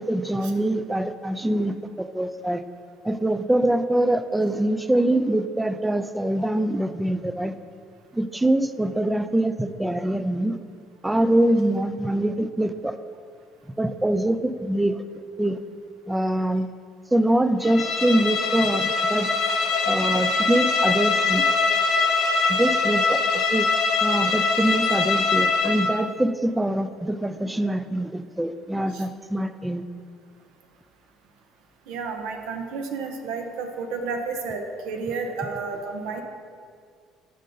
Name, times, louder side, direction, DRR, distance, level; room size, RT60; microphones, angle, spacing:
voice 1, 0.0-2.6 3.0-7.5 8.1-10.6 11.0-13.0 13.8-15.0 15.4-15.6 16.1-16.7 17.1-19.3 19.9-21.5 22.5-23.2 23.5-23.7 24.0-29.8, right 1 dB, 10° right, 11 dB, 0.3 m, -24 dB
Bowed string instrument, 17.6-26.0, left 4 dB, 65° left, 0.7 m, -23 dB
voice 2, 31.9-36.2, right 4 dB, 85° right, 4 dB, 0.6 m, -31 dB
6.5 x 5.2 x 3.8 m, 2.1 s
cardioid pair, 110°, 0 cm